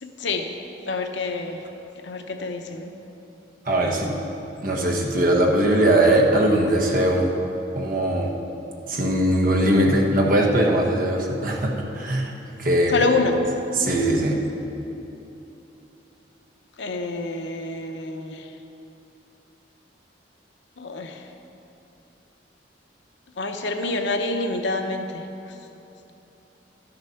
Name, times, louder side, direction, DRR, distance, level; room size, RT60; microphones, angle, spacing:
voice 1, 0.0-0.5 0.9-1.6 2.0-2.9 12.9-13.4 16.8-18.5 20.8-21.2 23.4-25.2, left 3 dB, 80° left, 5 dB, 0.8 m, -27 dB
voice 2, 3.6-4.1 4.6-7.3 7.7-8.3 8.9-12.3 12.6-13.1 13.7-14.4, right 1 dB, 50° right, 0 dB, 1.3 m, -20 dB
12.0 x 6.7 x 5.8 m, 3.0 s
head